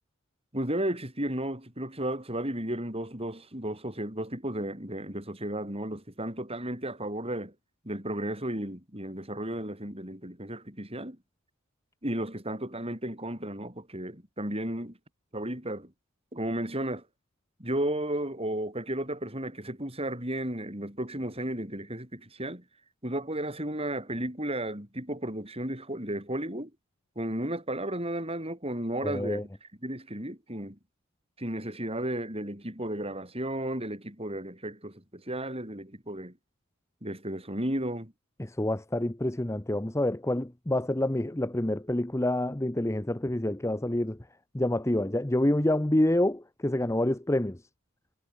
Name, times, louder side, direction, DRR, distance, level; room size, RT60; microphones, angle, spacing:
voice 1, 0.5-7.5 7.8-11.2 12.0-15.0 15.3-15.9 16.3-17.0 17.6-22.6 23.0-26.7 27.2-30.8 31.4-36.3 37.0-38.1, right 1 dB, 25° right, 7.7 m, -34 dB
voice 2, 29.0-29.4 38.4-44.2 44.5-47.6, left 1 dB, 15° left, 0.8 m, -27 dB
head